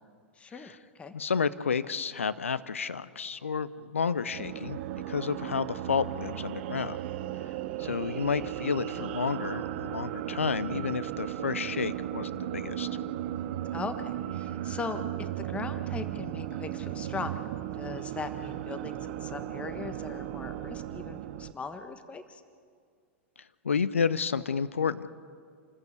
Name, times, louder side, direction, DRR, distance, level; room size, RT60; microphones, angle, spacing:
voice 1, 0.3-1.1 13.7-17.4 17.7-22.4, left 4 dB, 15° left, 9 dB, 1.4 m, -39 dB
voice 2, 1.1-4.8 5.1-7.0 7.8-12.9 23.6-25.1, left 6 dB, 80° left, 15 dB, 0.7 m, -30 dB
sound 1, 4.2-21.5, right 12 dB, 55° right, 0.9 m, -36 dB
28.5 x 14.0 x 8.4 m, 2.1 s
figure-of-eight pair, 95°, 7 cm